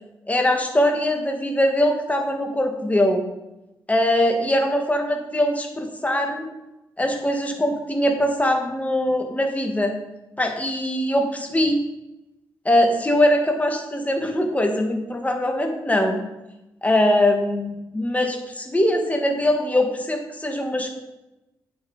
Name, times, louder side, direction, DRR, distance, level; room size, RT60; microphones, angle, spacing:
voice 1, 0.3-3.2 3.9-6.4 7.0-10.0 10.4-11.8 12.6-16.2 16.8-21.0, left 1 dB, 15° left, 3 dB, 2.5 m, -22 dB
8.9 x 7.5 x 5.3 m, 0.98 s
supercardioid pair, 50°, 8 cm